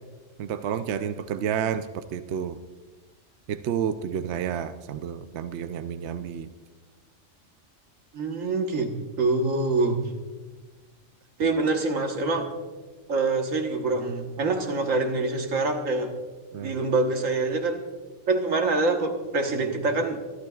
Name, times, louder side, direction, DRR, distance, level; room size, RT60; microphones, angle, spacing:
voice 1, 0.4-2.6 3.5-6.5 16.5-16.7, right 8 dB, 70° right, 10 dB, 0.8 m, -30 dB
voice 2, 8.1-8.9 9.2-10.0 11.4-12.5 13.1-16.1 16.6-17.9 18.3-20.2, right 3 dB, 90° right, 4 dB, 1.7 m, -25 dB
24.0 x 12.0 x 2.4 m, 1.3 s
omnidirectional pair, 1.3 m